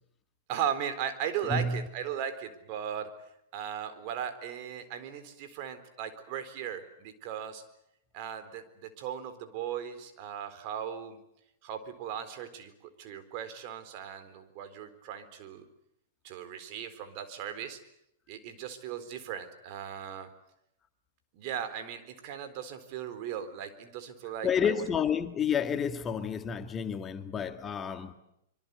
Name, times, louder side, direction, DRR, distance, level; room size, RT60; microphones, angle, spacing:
voice 1, 0.5-3.1 3.5-7.6 8.1-11.2 11.6-15.7 16.2-17.8 18.3-20.3 21.3-24.8, right 9 dB, 45° right, 4.0 m, -37 dB
voice 2, 1.5-1.9 24.4-28.1, left 6 dB, 20° left, 1.7 m, -30 dB
25.5 x 24.5 x 8.2 m
hypercardioid pair, 115°, 0 cm